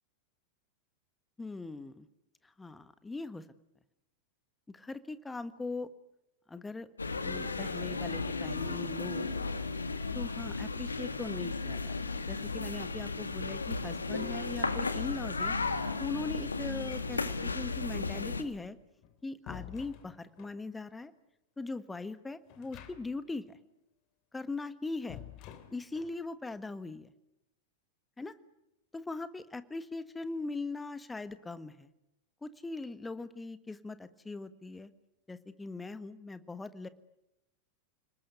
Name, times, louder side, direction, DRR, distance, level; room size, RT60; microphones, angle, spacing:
voice 1, 1.4-2.1 2.4-3.4 4.7-5.9 6.5-6.9 7.2-9.3 10.1-15.6 16.0-18.8 19.2-21.1 21.6-23.6 24.3-25.2 25.7-27.1 28.2-28.3 28.9-31.9 32.4-34.9 35.3-36.9, left 3 dB, 10° left, 13 dB, 1.5 m, -40 dB
sound 1, 7.0-18.4, left 3 dB, 80° left, 1.8 m, -35 dB
sound 2, 16.7-17.5 18.8-20.6 22.5-23.3 23.6-23.7 25.1-26.2, left 11 dB, 40° left, 3.0 m, -50 dB
29.5 x 20.0 x 9.3 m, 0.89 s
figure-of-eight pair, 90°, 0 cm